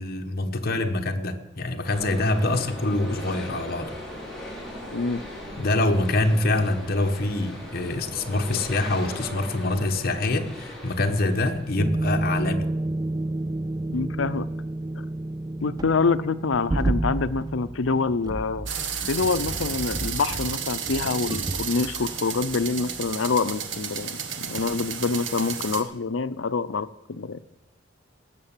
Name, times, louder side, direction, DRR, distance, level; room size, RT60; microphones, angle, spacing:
voice 1, 0.0-3.9 5.6-12.7, left 2 dB, 55° left, 5 dB, 1.2 m, -25 dB
sound 1, 1.8-11.9, equal, 5° left, 3.9 m, -39 dB
voice 2, 4.9-5.2 13.9-14.5 15.6-18.7 19.1-27.4, left 4 dB, 85° left, 14 dB, 0.6 m, -26 dB
sound 2, 11.8-23.3 23.6-23.8, right 2 dB, 20° right, 0.4 m, -30 dB
sound 3, 18.7-25.8, right 7 dB, 75° right, 1.3 m, -32 dB
18.0 x 6.8 x 7.3 m, 0.93 s
head